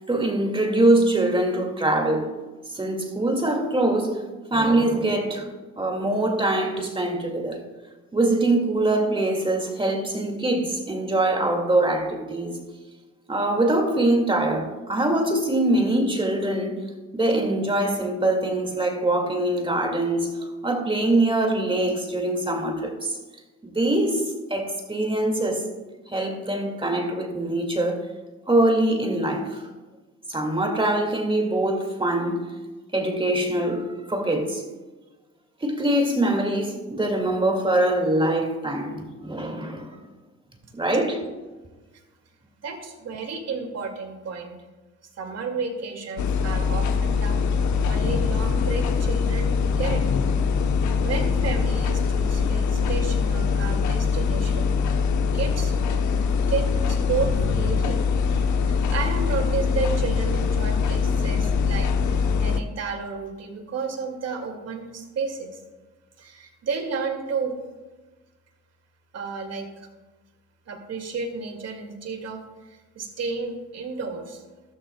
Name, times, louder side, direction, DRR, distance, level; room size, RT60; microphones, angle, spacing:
voice 1, 0.1-2.3 2.7-4.2 4.5-5.5 5.8-7.6 8.1-12.6 13.3-16.8 17.1-23.2 23.6-24.2 24.5-25.7 26.1-28.1 28.5-29.6 30.3-32.5 32.9-34.6 35.6-40.0 40.7-41.2, right 1 dB, 15° right, 2.0 m, -23 dB
voice 2, 42.6-44.5 45.2-47.4 47.8-50.0 51.0-54.7 55.3-55.7 56.5-58.0 58.6-65.5 66.2-67.5 69.1-69.9 70.7-74.4, right 5 dB, 55° right, 2.1 m, -32 dB
sound 1, 46.2-62.6, left 5 dB, 70° left, 0.9 m, -23 dB
13.0 x 13.0 x 2.2 m
cardioid pair, 90°, 30 cm